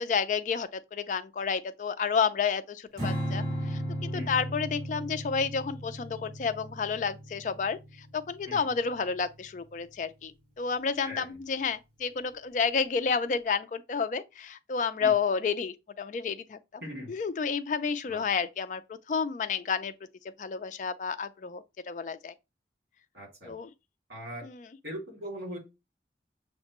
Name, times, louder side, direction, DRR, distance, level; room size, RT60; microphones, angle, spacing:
voice 1, 0.0-19.9 20.2-22.3 23.4-23.7 24.4-24.7, left 5 dB, 45° left, 0.3 m, -31 dB
Strum, 3.0-9.4, equal, 40° right, 2.2 m, -36 dB
voice 2, 16.8-17.1 18.1-18.2 23.1-23.6 24.1-24.4 24.8-25.6, equal, 70° right, 2.5 m, -40 dB
6.4 x 2.2 x 2.9 m
head